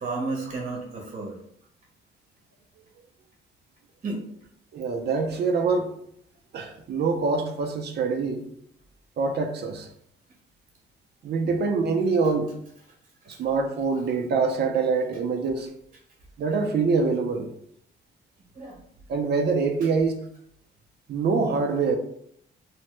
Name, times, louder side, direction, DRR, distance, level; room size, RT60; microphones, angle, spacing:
voice 1, 0.0-1.4 4.0-4.3 11.4-11.6 18.6-18.8 19.8-19.9, right 3 dB, 35° right, 0 dB, 0.9 m, -32 dB
voice 2, 4.7-5.9 6.5-8.4 9.2-9.9 11.2-12.5 13.3-15.7 16.4-17.5 19.1-20.2 21.1-22.0, right 4 dB, 55° right, 4 dB, 0.5 m, -25 dB
3.1 x 2.1 x 3.0 m, 0.69 s
cardioid pair, 90°, 20 cm